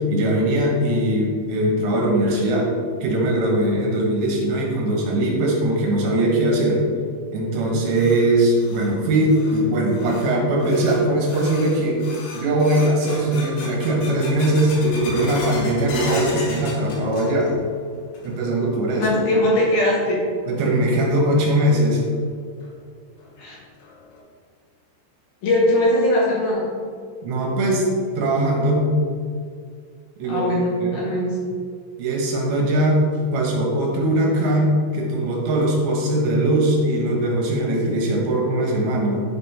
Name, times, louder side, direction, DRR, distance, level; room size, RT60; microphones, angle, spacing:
voice 1, 0.0-2.7 3.0-6.8 7.3-12.0 12.3-17.5 18.2-19.1 20.5-22.0 27.2-27.9 28.2-28.9 30.2-30.5 30.8-31.0 32.0-33.0 33.3-39.2, right 1 dB, 70° right, -2 dB, 3.5 m, -20 dB
sound 1, 7.9-17.7 17.9-18.6 18.9-19.0 19.8-19.9 21.5-21.6 22.1-22.2 22.6-22.7 23.2-23.3 23.8-24.2, left 2 dB, 85° left, 4.1 m, -36 dB
voice 2, 19.0-20.2 23.4-23.6 25.4-26.7 30.3-31.3, left 1 dB, 65° left, -4 dB, 2.9 m, -20 dB
11.0 x 4.2 x 5.5 m, 2.1 s
omnidirectional pair, 5.5 m